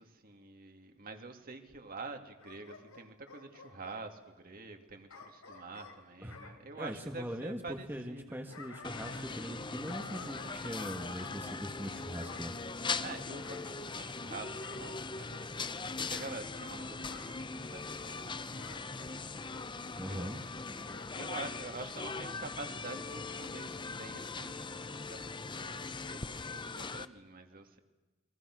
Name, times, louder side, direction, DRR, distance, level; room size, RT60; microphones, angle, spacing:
voice 1, 0.0-8.6 13.0-19.3 20.0-20.4 21.1-27.8, right 3 dB, 45° right, 5 dB, 2.7 m, -47 dB
Bark / Growling, 2.4-4.0 5.1-6.6 8.2-9.6 9.8-11.4 12.2-12.5 13.4-14.2 14.6-14.9 16.0-16.4 17.1-17.4 18.6-18.8 19.5-19.7 20.8-21.4 21.8-21.9, left 4 dB, 85° left, 3.7 m, -51 dB
voice 2, 6.7-7.6 7.9-12.5 20.0-20.4, equal, 10° right, 3 dB, 1.6 m, -41 dB
sound 1, 8.8-27.1, left 4 dB, 25° left, 0.8 m, -40 dB
30.0 x 23.0 x 6.3 m, 1.2 s
head